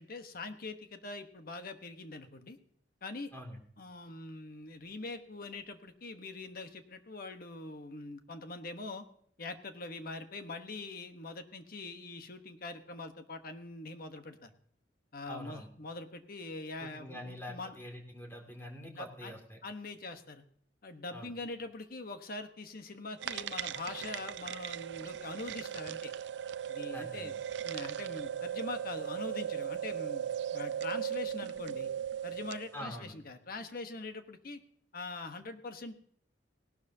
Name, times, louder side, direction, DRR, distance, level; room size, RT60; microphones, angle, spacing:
voice 1, 0.0-2.6 3.0-3.3 3.8-9.0 9.4-14.5 15.1-17.8 18.9-19.3 19.6-20.4 20.8-26.1 26.7-27.4 27.6-31.9 32.2-34.6 34.9-36.0, left 3 dB, 55° left, 7 dB, 1.2 m, -43 dB
voice 2, 15.3-15.7 16.8-19.6 21.1-21.3 26.9-27.3 32.7-33.1, equal, 15° left, 2 dB, 2.4 m, -45 dB
sound 1, 23.2-32.7, right 9 dB, 70° right, 0.5 m, -38 dB
18.0 x 12.0 x 2.8 m, 0.63 s
head